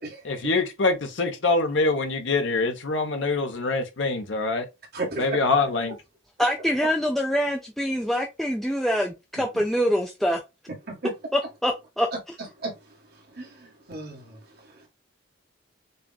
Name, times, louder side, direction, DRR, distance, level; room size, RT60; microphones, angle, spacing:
voice 1, 0.2-4.6 5.2-6.0, left 3 dB, 70° left, 1.1 m, -24 dB
voice 2, 4.9-5.2 11.0-11.1 12.6-12.7 13.4-14.4, right 2 dB, 55° right, 2.0 m, -33 dB
voice 3, 6.4-10.4 11.3-12.1, equal, ahead, 0.4 m, -25 dB
6.7 x 2.5 x 2.4 m
head